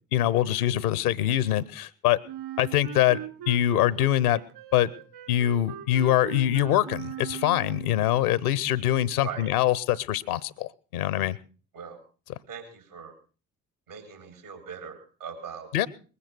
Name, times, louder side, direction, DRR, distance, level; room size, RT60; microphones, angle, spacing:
voice 1, 0.1-2.2 2.6-3.2 3.5-4.4 4.7-4.9 5.3-11.4 15.7-15.9, left 12 dB, 80° left, 22 dB, 0.8 m, -24 dB
Wind instrument woodwind instrument, 2.2-8.0, right 11 dB, 60° right, 2.6 m, -40 dB
voice 2, 12.5-13.1 13.9-15.7, right 7 dB, 80° right, 6 dB, 4.3 m, -40 dB
20.5 x 9.8 x 6.0 m, 0.38 s
figure-of-eight pair, 40°, 44 cm